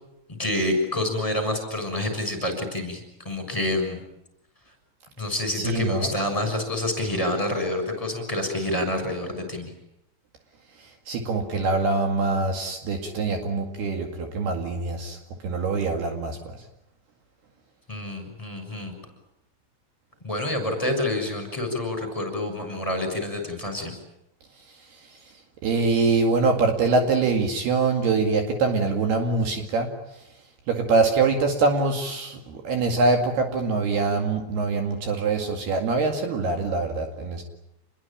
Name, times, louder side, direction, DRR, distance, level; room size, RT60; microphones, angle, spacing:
voice 1, 0.4-3.0 3.2-4.0 5.2-9.7 17.9-18.9 20.2-23.9, left 1 dB, 5° left, 6 dB, 6.5 m, -27 dB
voice 2, 5.5-6.1 11.1-15.2 15.4-16.6 25.6-29.9 30.7-37.4, right 3 dB, 65° right, 4 dB, 4.0 m, -24 dB
28.5 x 22.0 x 8.8 m, 0.85 s
omnidirectional pair, 5.1 m